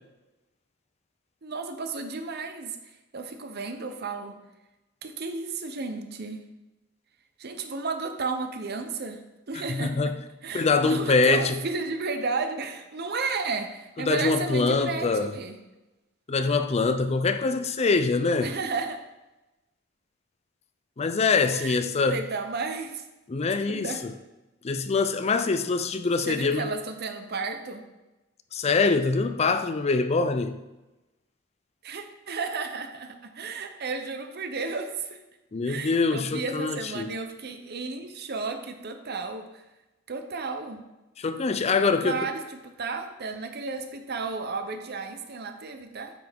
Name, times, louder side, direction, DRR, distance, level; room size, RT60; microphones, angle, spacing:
voice 1, 1.4-2.8 3.1-4.4 5.0-6.4 7.4-9.2 9.5-10.1 10.4-15.6 18.4-19.0 21.5-21.8 22.1-23.0 23.7-24.0 26.2-27.8 31.8-35.2 35.6-39.6 40.1-40.8 41.8-46.1, right 4 dB, 55° right, 0.8 m, -33 dB
voice 2, 9.5-10.2 10.5-11.6 14.0-15.3 16.3-18.5 21.0-22.2 23.3-24.1 24.6-26.7 28.5-30.6 35.5-37.1 41.2-42.2, left 4 dB, 30° left, 0.5 m, -24 dB
9.3 x 6.0 x 3.6 m
head